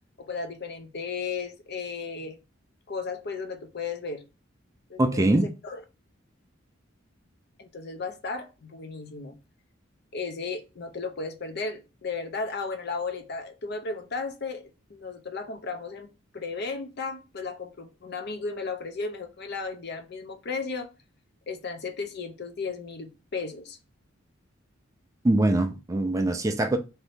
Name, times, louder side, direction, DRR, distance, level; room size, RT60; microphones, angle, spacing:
voice 1, 0.2-2.4 2.9-4.2 4.9-5.8 7.6-9.4 10.1-16.1 16.3-20.9 21.5-23.8, left 4 dB, 55° left, 0.6 m, -35 dB
voice 2, 5.0-5.5 25.2-26.8, right 1 dB, 15° right, 0.3 m, -23 dB
2.7 x 2.5 x 3.3 m
head